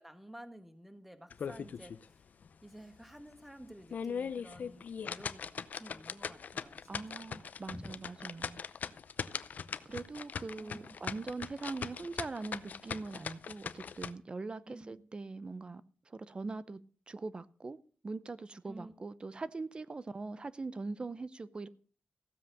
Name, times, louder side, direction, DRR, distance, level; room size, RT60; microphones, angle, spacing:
voice 1, 0.0-2.2 2.6-7.3 7.7-7.9 10.6-11.0 14.6-15.0 18.7-18.9, equal, 5° right, 1.7 m, -51 dB
sound 1, 1.3-2.0 2.4-2.5 3.0-3.1 3.7-14.1, left 6 dB, 60° left, 0.6 m, -40 dB
voice 2, 6.9-8.6 9.9-16.8 17.1-17.8 18.0-21.7, right 3 dB, 30° right, 0.6 m, -42 dB
15.5 x 7.5 x 6.4 m
wide cardioid pair, 110°, 3 cm